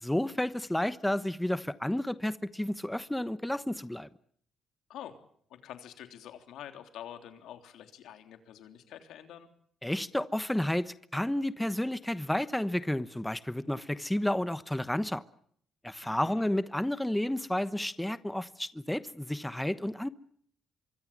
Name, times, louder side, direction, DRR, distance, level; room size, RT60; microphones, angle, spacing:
voice 1, 0.0-4.1 9.8-15.2 15.8-20.1, left 1 dB, 5° left, 1.0 m, -31 dB
voice 2, 5.5-9.5 16.0-16.4, left 10 dB, 80° left, 3.3 m, -47 dB
25.0 x 24.0 x 7.4 m
cardioid pair, 90°, 0 cm